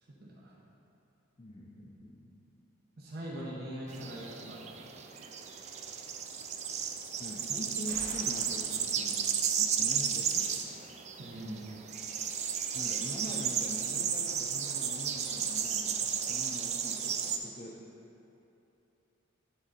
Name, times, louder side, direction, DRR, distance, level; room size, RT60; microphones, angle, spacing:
voice 1, 0.1-0.5 3.0-4.8 11.2-11.7, right 1 dB, 50° right, -6 dB, 0.9 m, -42 dB
voice 2, 1.4-2.3 7.2-10.8 12.7-17.9, left 1 dB, 25° left, -5 dB, 0.5 m, -44 dB
sound 1, 3.9-17.4, right 7 dB, 35° right, 0.4 m, -33 dB
sound 2, 7.9-11.4, equal, 15° right, 1.5 m, -52 dB
9.9 x 3.8 x 4.2 m, 2.9 s
head